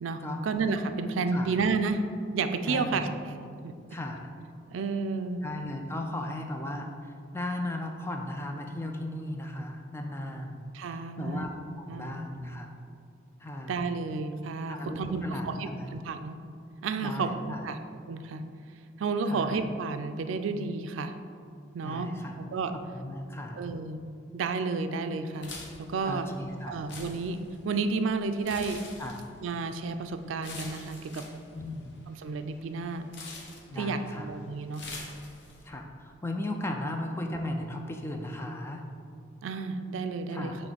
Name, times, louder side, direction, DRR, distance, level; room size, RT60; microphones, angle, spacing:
voice 1, 0.0-2.0 2.3-3.1 3.6-3.7 4.7-5.4 10.7-11.5 11.9-12.2 13.7-16.4 16.8-17.8 18.1-18.4 19.0-21.1 21.7-22.1 22.5-22.7 23.6-24.0 24.3-25.5 25.8-26.3 26.7-28.8 29.4-31.2 32.2-33.0 33.7-34.8 39.4-40.5, right 4 dB, 85° right, 9 dB, 0.4 m, -31 dB
voice 2, 2.7-3.0 3.9-4.3 5.4-11.5 11.8-12.7 13.4-13.8 14.7-15.9 17.0-17.6 19.3-19.6 21.8-22.4 22.9-23.6 26.1-26.8 29.0-29.2 31.5-31.9 33.7-34.3 35.6-38.8 40.3-40.6, left 1 dB, 15° left, 3 dB, 0.4 m, -36 dB
sound 1, 25.3-35.7, left 3 dB, 65° left, 0.9 m, -46 dB
6.2 x 3.2 x 5.0 m, 2.4 s
head